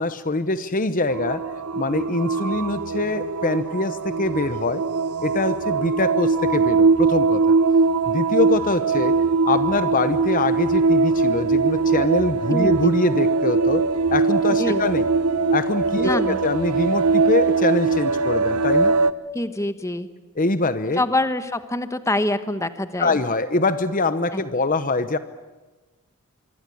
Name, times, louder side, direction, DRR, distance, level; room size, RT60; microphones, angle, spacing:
voice 1, 0.0-1.4 1.8-4.8 5.2-7.5 8.1-9.2 9.5-15.1 15.5-18.9 20.4-21.0 23.0-25.2, left 2 dB, 35° left, 12 dB, 0.9 m, -24 dB
sound 1, 1.1-19.1, right 4 dB, 90° right, 1.0 m, -21 dB
voice 2, 12.5-12.9 14.6-14.8 16.0-16.4 19.3-20.1 21.0-23.2 24.3-24.4, left 1 dB, 15° left, 11 dB, 1.2 m, -25 dB
25.0 x 25.0 x 8.5 m, 1.2 s
head